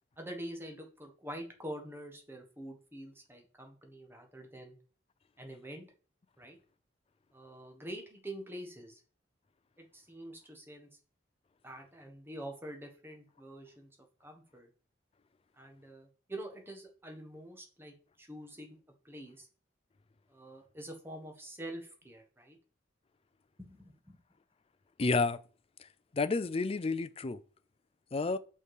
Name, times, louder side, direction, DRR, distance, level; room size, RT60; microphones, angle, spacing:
voice 1, 0.2-4.8 5.4-5.9 6.4-6.6 7.3-9.0 9.8-10.9 11.6-13.9 14.2-14.7 15.6-18.8 19.0-19.5 20.3-22.6 23.6-24.2, right 1 dB, 10° right, 1.4 m, -46 dB
voice 2, 25.0-25.4 26.1-27.4 28.1-28.4, left 3 dB, 30° left, 0.4 m, -30 dB
6.0 x 5.5 x 4.8 m
head